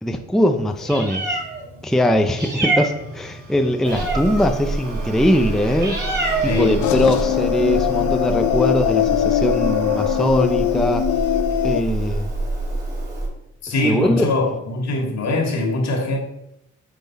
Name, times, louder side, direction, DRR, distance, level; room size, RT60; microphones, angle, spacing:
voice 1, 0.0-1.4 1.8-6.0 6.4-11.1 11.6-12.3 13.8-14.3, equal, ahead, 5 dB, 0.5 m, -21 dB
Meow, 0.7-13.3, right 2 dB, 35° right, 3.0 m, -27 dB
sound 1, 2.2-12.3, right 1 dB, 70° right, 2.4 m, -36 dB
voice 2, 6.5-6.8 13.6-16.2, left 2 dB, 60° left, 1 dB, 2.1 m, -22 dB
sound 2, 6.8-11.8, left 13 dB, 85° left, 0.5 m, -21 dB
9.3 x 3.8 x 4.7 m, 0.84 s
cardioid pair, 90°, 30 cm